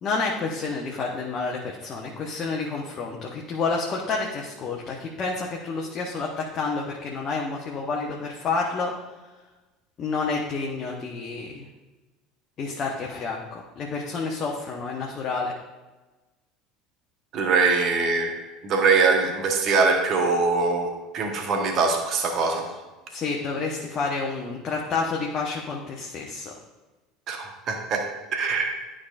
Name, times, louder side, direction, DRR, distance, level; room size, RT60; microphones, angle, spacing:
voice 1, 0.0-8.9 10.0-11.7 12.6-15.5 23.1-26.5, left 4 dB, 35° left, -1 dB, 1.0 m, -29 dB
voice 2, 17.3-18.3 18.6-22.7 27.3-28.0 28.3-28.7, right 4 dB, 40° right, 3 dB, 1.2 m, -22 dB
11.5 x 5.0 x 2.5 m, 1.2 s
figure-of-eight pair, 65°, 0 cm